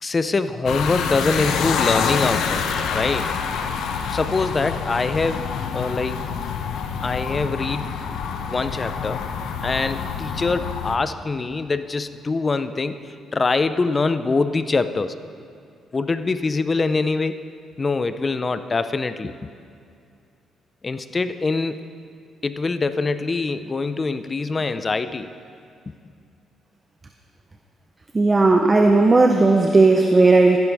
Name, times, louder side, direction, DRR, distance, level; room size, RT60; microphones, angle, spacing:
voice 1, 0.0-3.5 4.1-5.4 5.7-6.2 7.0-7.9 8.5-9.2 9.6-13.0 13.3-15.1 15.9-17.4 17.8-19.5 20.8-21.8 22.4-25.3, left 3 dB, 30° left, 11 dB, 0.5 m, -24 dB
sound 1, 0.7-11.0, left 6 dB, 80° left, 0.8 m, -26 dB
voice 2, 28.1-30.6, right 3 dB, 25° right, 4 dB, 0.7 m, -15 dB
15.0 x 11.0 x 3.4 m, 2.4 s
cardioid pair, 90°, 0 cm